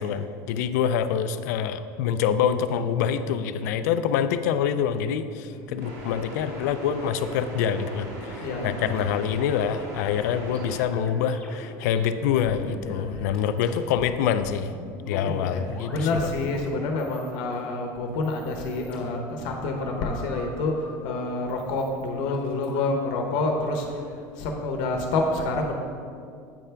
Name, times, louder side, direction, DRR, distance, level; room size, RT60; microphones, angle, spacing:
voice 1, 0.0-14.7 15.1-16.3 24.8-24.9, left 8 dB, 90° left, 11 dB, 0.4 m, -26 dB
sound 1, 5.8-10.8, right 1 dB, 90° right, 1.7 m, -38 dB
voice 2, 8.4-8.7 12.5-13.5 15.1-15.6 15.9-24.0 24.4-25.7, left 2 dB, 65° left, 2 dB, 0.9 m, -28 dB
sound 2, 10.4-14.1 14.4-16.7 17.0-17.6 18.1-20.8 21.5-22.7, left 1 dB, 15° left, 1.5 m, -45 dB
8.4 x 3.4 x 5.7 m, 2.3 s
cardioid pair, 140°, 9 cm